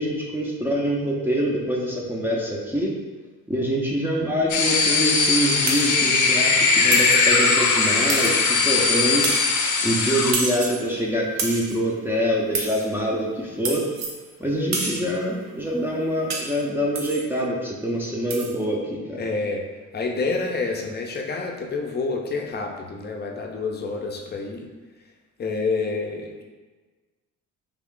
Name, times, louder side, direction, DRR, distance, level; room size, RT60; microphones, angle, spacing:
voice 1, 0.0-2.9 3.5-9.3 9.8-13.9 14.4-19.2, equal, 5° right, -4 dB, 0.6 m, -25 dB
sound 1, 4.5-10.3, left 4 dB, 75° left, 0.6 m, -20 dB
sound 2, 5.7-6.0 6.9-7.3 8.1-8.6 9.2-9.6 10.3-10.9 11.4-11.8 12.5-12.9 13.6-14.2 14.7-15.1 16.3-16.6 17.0-17.3 18.3-18.5, right 3 dB, 60° right, 0.7 m, -29 dB
voice 2, 19.2-19.7 19.9-24.7 25.4-26.4, left 3 dB, 35° left, 1 dB, 0.6 m, -28 dB
3.5 x 2.4 x 3.7 m, 1.3 s
cardioid pair, 90°, 30 cm